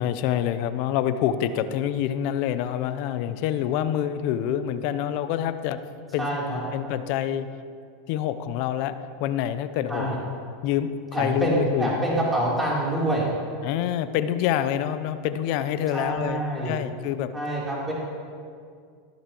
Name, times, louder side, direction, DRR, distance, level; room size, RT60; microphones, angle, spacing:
voice 1, 0.0-5.8 6.1-6.3 6.7-7.5 8.1-8.9 9.2-10.1 10.6-12.0 13.6-17.3, left 10 dB, 60° left, 12 dB, 0.6 m, -26 dB
voice 2, 6.2-6.6 9.9-10.2 11.1-13.3 15.9-16.7 17.3-17.9, right 1 dB, 15° right, -6 dB, 3.4 m, -26 dB
14.5 x 12.0 x 3.0 m, 2.2 s
hypercardioid pair, 100°, 0 cm